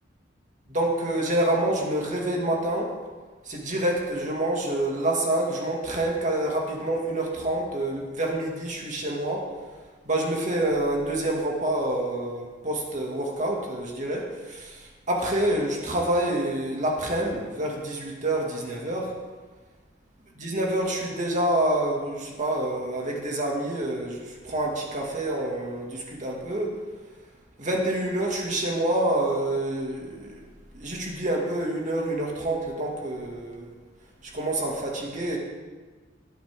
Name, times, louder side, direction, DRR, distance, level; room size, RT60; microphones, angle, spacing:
voice 1, 0.7-2.9 3.4-9.5 10.1-19.1 20.4-26.7 27.6-30.5 30.7-33.7 34.2-35.4, right 1 dB, 40° right, -1 dB, 2.3 m, -27 dB
18.0 x 9.1 x 3.8 m, 1.4 s
head